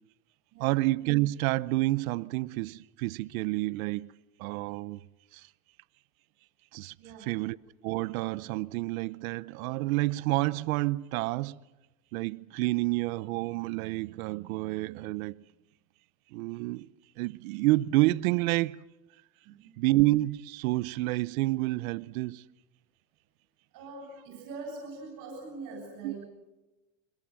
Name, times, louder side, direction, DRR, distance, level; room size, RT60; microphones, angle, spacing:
voice 1, 0.6-4.1 4.4-5.0 6.7-6.9 7.3-7.6 7.8-11.6 12.1-15.4 16.3-16.9 17.2-18.8 19.8-22.4 26.0-26.1, right 19 dB, 75° right, 0.8 m, -29 dB
voice 2, 7.0-7.4 19.4-19.7 23.7-26.3, right 3 dB, 50° right, 7.8 m, -43 dB
25.0 x 22.0 x 7.6 m
supercardioid pair, 150°, 42 cm